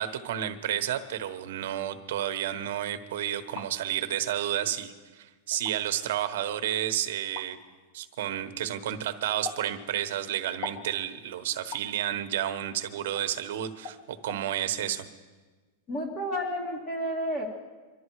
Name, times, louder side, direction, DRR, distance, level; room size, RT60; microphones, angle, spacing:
voice 1, 0.0-7.6 7.9-15.1, right 11 dB, 60° right, 9 dB, 1.2 m, -31 dB
sound 1, 3.3-3.7 4.6-4.7 5.5-5.8 7.3-7.5 9.4-9.7 10.6-10.9 11.7-11.9 13.2-13.3 13.8-14.0 14.3-14.4, left 3 dB, 45° left, 1.8 m, -39 dB
voice 2, 15.9-17.5, equal, 25° left, 0 dB, 2.0 m, -31 dB
25.0 x 12.0 x 4.7 m, 1.3 s
supercardioid pair, 180°, 0 cm